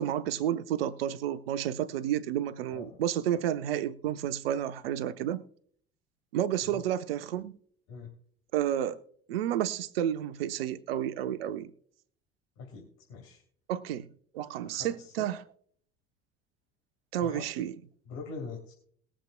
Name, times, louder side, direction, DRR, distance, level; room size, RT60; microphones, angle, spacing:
voice 1, 0.0-5.4 6.3-7.5 8.5-9.0 9.3-11.7 13.7-14.1 14.3-15.4 17.1-17.7, right 11 dB, 65° right, 0.9 m, -31 dB
voice 2, 12.6-13.4 14.6-15.2 17.2-17.4 18.0-18.7, left 4 dB, 55° left, 3.1 m, -43 dB
21.5 x 7.6 x 2.2 m
figure-of-eight pair, 60°, 32 cm